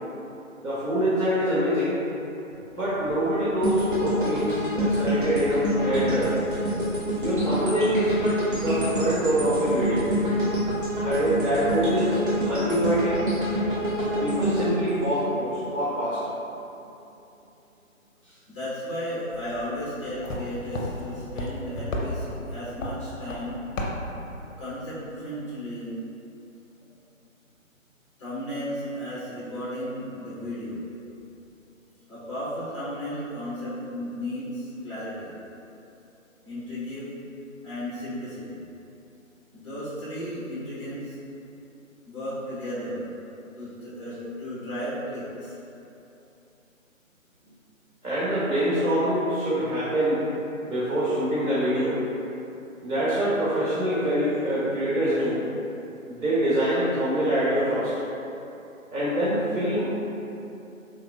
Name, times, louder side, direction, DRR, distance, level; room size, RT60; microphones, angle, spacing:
voice 1, 0.6-2.0 2.7-6.4 7.2-8.2 8.6-10.1 11.0-13.2 14.2-16.2 48.0-50.2 50.7-52.0 52.8-55.4 56.1-57.9 58.9-59.9, equal, 90° right, -10 dB, 1.0 m, -25 dB
sound 1, 3.6-15.8 16.2-16.4, equal, 40° right, 0.6 m, -27 dB
voice 2, 18.5-23.6 24.6-25.9 28.2-30.8 32.1-35.3 36.4-37.1 37.6-38.7 39.5-41.2 42.0-43.0 43.6-45.6, equal, 20° left, -10 dB, 0.8 m, -34 dB
sound 2, 19.3-24.5, left 1 dB, 65° left, 0.6 m, -34 dB
3.5 x 2.5 x 2.3 m, 2.8 s
figure-of-eight pair, 150°, 41 cm